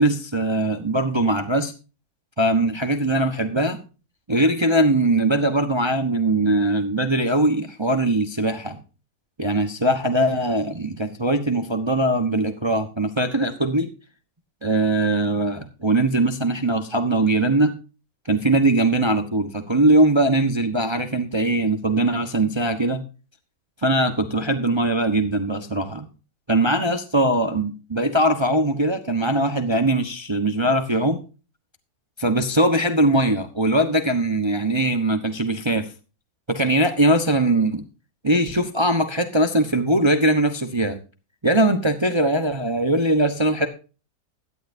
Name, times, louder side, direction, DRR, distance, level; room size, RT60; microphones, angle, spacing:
voice 1, 0.0-1.7 2.4-3.8 4.3-8.8 9.4-13.9 14.6-17.8 18.3-23.0 23.8-26.1 26.5-31.2 32.2-35.9 36.5-37.8 38.2-41.0 41.4-43.7, right 1 dB, 20° right, 6 dB, 1.0 m, -21 dB
16.5 x 11.5 x 2.7 m, 0.33 s
omnidirectional pair, 1.8 m